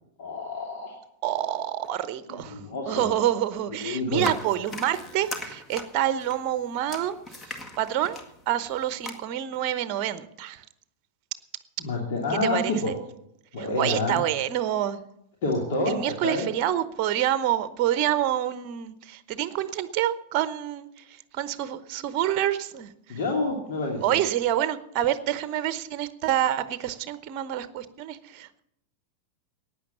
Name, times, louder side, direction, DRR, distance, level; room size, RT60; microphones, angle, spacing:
voice 1, 0.2-0.9 2.3-3.1 3.8-4.3 11.8-12.9 13.5-14.2 15.4-16.5 23.1-24.0, left 2 dB, 55° left, -1 dB, 2.9 m, -28 dB
voice 2, 1.2-7.1 7.5-8.2 8.5-10.6 12.4-13.0 13.6-15.0 15.9-23.2 24.0-28.6, right 11 dB, 40° right, 14 dB, 0.9 m, -27 dB
sound 1, 4.2-9.1, left 2 dB, 20° left, 1.9 m, -39 dB
15.5 x 9.6 x 7.2 m, 0.77 s
figure-of-eight pair, 90°, 0 cm